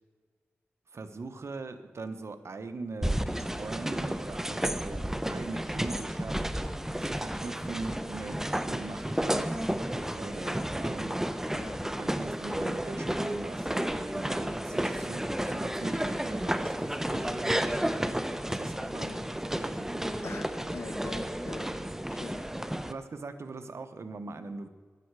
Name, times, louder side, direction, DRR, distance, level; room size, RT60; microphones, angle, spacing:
voice 1, 0.9-5.0 5.3-6.4 7.0-11.3 12.0-19.1 19.5-20.0 22.9-24.7, right 3 dB, 70° right, 9 dB, 1.1 m, -41 dB
sound 1, 3.0-22.9, right 1 dB, 10° right, 0.8 m, -32 dB
voice 2, 18.9-19.2 20.2-21.7 22.1-22.4, left 4 dB, 70° left, 7 dB, 1.4 m, -42 dB
15.0 x 11.5 x 4.8 m, 1.5 s
cardioid pair, 60°, 5 cm